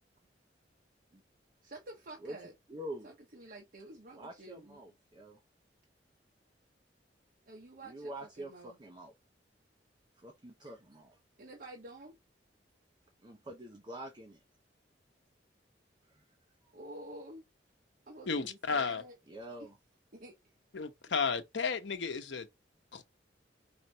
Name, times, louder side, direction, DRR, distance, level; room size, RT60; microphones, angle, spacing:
voice 1, 1.6-2.5 3.0-4.8 7.5-8.1 8.4-8.8 11.4-12.1 16.7-17.5 18.1-19.2 19.6-19.7 20.1-20.5, right 1 dB, 50° right, 1.0 m, -49 dB
voice 2, 2.7-3.1 4.1-5.4 7.8-9.1 10.2-11.2 13.2-14.4 16.1-16.2 16.6-16.7 19.3-19.8, right 1 dB, 25° right, 0.8 m, -46 dB
voice 3, 18.3-19.0 20.7-22.5 22.9-23.1, left 5 dB, 85° left, 0.8 m, -33 dB
5.1 x 3.2 x 2.8 m
head